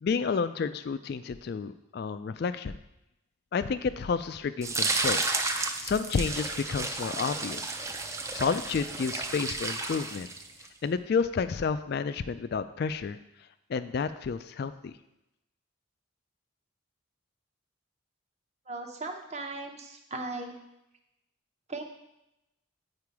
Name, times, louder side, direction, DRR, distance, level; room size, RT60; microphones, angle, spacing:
voice 1, 0.0-2.8 3.5-5.2 5.5-7.7 8.3-10.3 10.8-13.2 13.7-14.9, left 5 dB, 50° left, 12 dB, 0.3 m, -30 dB
sound 1, 4.6-10.7, right 3 dB, 15° right, 0.4 m, -32 dB
voice 2, 18.7-20.6 21.7-21.8, right 3 dB, 35° right, 4 dB, 0.8 m, -37 dB
8.6 x 4.8 x 4.7 m, 0.89 s
head